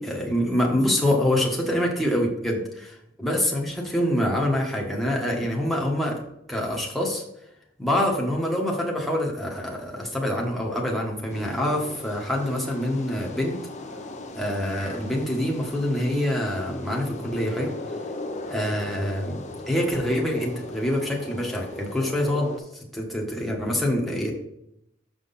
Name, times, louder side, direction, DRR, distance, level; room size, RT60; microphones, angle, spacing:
voice 1, 0.0-7.2 7.8-13.5 14.3-17.7 18.5-19.4 19.7-22.5 22.9-24.3, left 1 dB, ahead, -3 dB, 1.4 m, -25 dB
sound 1, 11.3-22.6, left 2 dB, 40° left, 0.8 m, -38 dB
6.4 x 6.0 x 4.1 m, 0.80 s
head